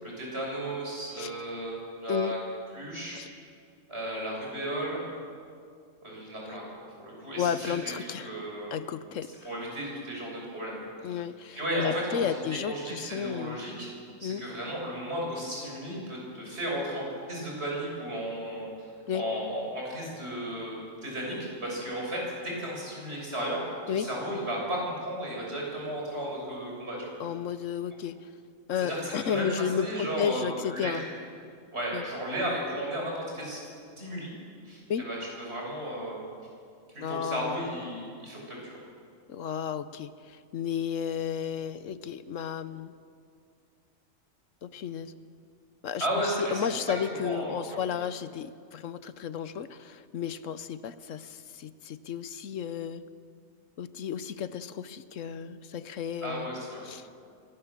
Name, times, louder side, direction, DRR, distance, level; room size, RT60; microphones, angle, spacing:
voice 1, 0.0-2.4 2.7-3.2 3.9-5.0 6.0-8.0 8.2-8.7 9.4-10.8 11.1-11.2 11.6-13.9 14.2-18.9 19.1-27.1 28.8-31.0 31.7-33.6 34.0-34.3 34.7-36.2 36.9-38.8 46.0-47.0 47.2-47.8 56.2-56.8, right 1 dB, 55° right, -3 dB, 7.0 m, -34 dB
voice 2, 7.4-8.3 8.7-9.3 11.0-13.6 14.2-14.4 19.1-19.2 23.9-24.1 27.2-28.2 28.7-31.0 31.9-32.0 34.9-35.1 37.0-37.6 39.3-42.9 44.6-45.1 45.8-46.1 46.4-53.0 53.8-56.5 56.8-57.1, left 8 dB, 75° left, 13 dB, 1.1 m, -33 dB
24.5 x 18.0 x 7.4 m, 2.3 s
omnidirectional pair, 1.3 m